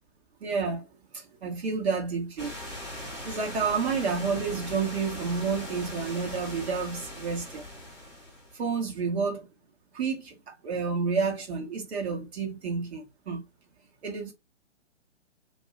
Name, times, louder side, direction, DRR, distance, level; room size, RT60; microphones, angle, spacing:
voice 1, 0.4-0.9 1.1-2.6 3.2-7.6 8.5-9.5 9.9-13.4 14.0-14.3, right 5 dB, 55° right, 1.5 m, -30 dB
sound 1, 2.4-8.6, left 1 dB, 5° right, 0.7 m, -40 dB
2.9 x 2.9 x 2.3 m
hypercardioid pair, 140°, 37 cm